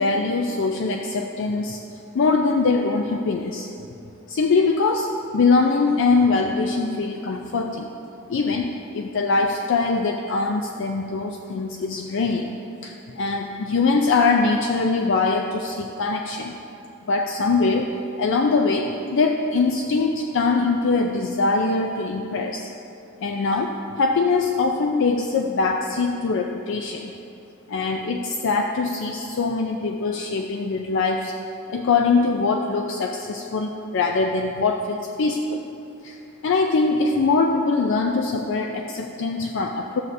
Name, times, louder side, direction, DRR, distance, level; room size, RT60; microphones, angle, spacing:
voice 1, 0.0-1.8 2.1-3.7 4.3-7.9 8.3-16.5 17.1-22.7 23.2-27.1 27.7-31.3 31.7-35.7 36.0-36.2 36.4-40.0, left 3 dB, 60° left, 3 dB, 0.4 m, -22 dB
12.5 x 7.8 x 2.7 m, 2.8 s
head